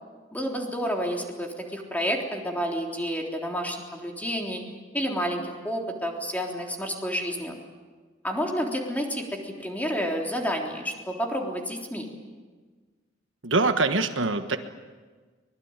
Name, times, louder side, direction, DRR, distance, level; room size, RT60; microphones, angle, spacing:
voice 1, 0.3-4.6 4.9-7.6 8.2-12.1, equal, 10° left, 1 dB, 3.6 m, -30 dB
voice 2, 13.4-14.6, right 3 dB, 80° right, 7 dB, 1.5 m, -23 dB
24.0 x 21.0 x 9.0 m, 1.4 s
head